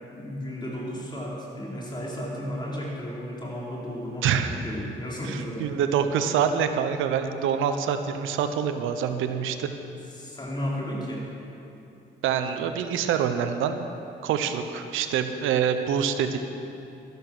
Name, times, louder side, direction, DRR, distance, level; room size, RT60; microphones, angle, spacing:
voice 1, 0.1-5.7 10.1-11.3, equal, 20° left, -4 dB, 4.1 m, -34 dB
voice 2, 4.2-4.5 5.2-9.7 12.2-13.9 14.2-16.4, right 8 dB, 90° right, 8 dB, 0.8 m, -26 dB
12.5 x 12.0 x 6.2 m, 2.8 s
cardioid pair, 90°, 20 cm